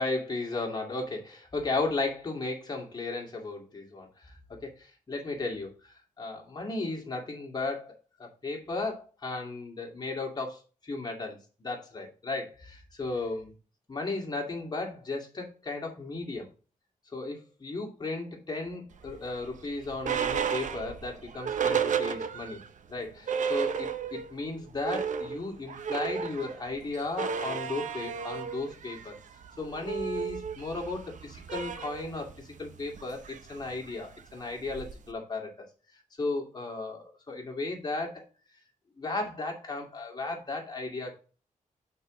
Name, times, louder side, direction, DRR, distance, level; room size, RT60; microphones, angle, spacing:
voice 1, 0.0-13.5 13.9-16.5 17.1-22.6 22.9-29.1 29.6-35.7 36.2-38.2 39.0-41.1, left 3 dB, 30° left, 1 dB, 2.4 m, -35 dB
sound 1, 19.0-22.7 23.0-23.1 23.3-24.4 24.7-35.1, right 7 dB, 65° right, 0.8 m, -33 dB
8.5 x 4.6 x 3.9 m, 0.36 s
wide cardioid pair, 145°, 14 cm